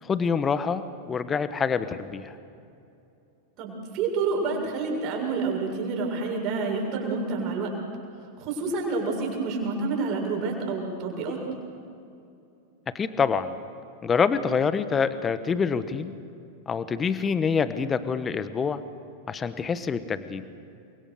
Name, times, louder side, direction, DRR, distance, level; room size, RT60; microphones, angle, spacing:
voice 1, 0.0-2.3 12.9-13.6 14.0-16.1 16.7-18.8 19.3-20.4, left 6 dB, 20° left, 13 dB, 1.3 m, -26 dB
voice 2, 3.6-7.7 8.4-11.4, right 4 dB, 40° right, 0 dB, 7.2 m, -28 dB
29.5 x 23.5 x 6.7 m, 2.6 s
figure-of-eight pair, 90°, 0 cm